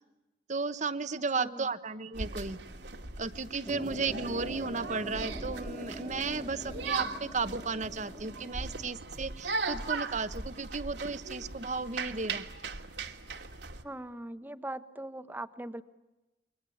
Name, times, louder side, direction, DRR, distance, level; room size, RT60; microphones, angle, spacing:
voice 1, 0.5-2.6 3.2-12.4, right 4 dB, 45° right, 12 dB, 1.0 m, -34 dB
voice 2, 1.3-1.7 13.8-15.8, right 1 dB, 10° right, 11 dB, 1.0 m, -40 dB
sound 1, 2.1-13.8, right 4 dB, 90° right, 2.4 m, -39 dB
sound 2, 3.6-8.9, equal, 15° left, 2.4 m, -44 dB
29.5 x 23.5 x 8.6 m, 1.0 s
head